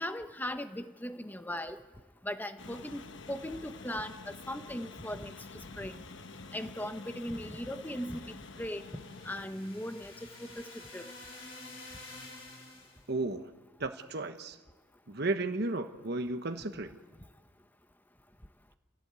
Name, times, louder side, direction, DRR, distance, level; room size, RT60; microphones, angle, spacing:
voice 1, 0.0-1.8 2.2-3.0 3.3-5.3 5.8-6.0 6.5-8.8 9.2-11.1, left 1 dB, 10° left, 8 dB, 1.1 m, -38 dB
sound 1, 2.6-9.5, left 4 dB, 70° left, 1.1 m, -48 dB
sound 2, 8.3-13.1, left 2 dB, 90° left, 4.0 m, -50 dB
voice 2, 13.1-13.5 13.8-14.6 15.1-17.0, right 2 dB, 55° right, 6 dB, 1.2 m, -34 dB
27.5 x 17.0 x 8.3 m, 1.3 s
head